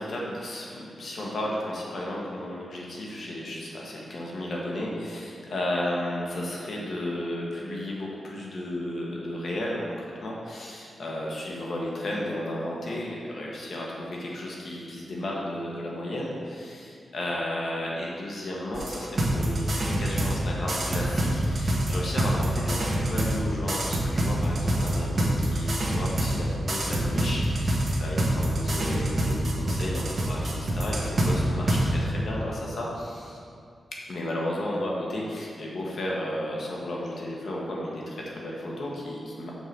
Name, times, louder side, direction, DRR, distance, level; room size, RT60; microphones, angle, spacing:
voice 1, 0.0-33.4 34.1-39.5, left 1 dB, 60° left, -3 dB, 1.1 m, -33 dB
sound 1, 18.7-20.4 20.7-23.4 23.7-26.4 26.7-31.3 31.7-31.8, right 1 dB, 40° right, 1.2 m, -25 dB
5.4 x 4.7 x 6.0 m, 2.3 s
wide cardioid pair, 125°, 0 cm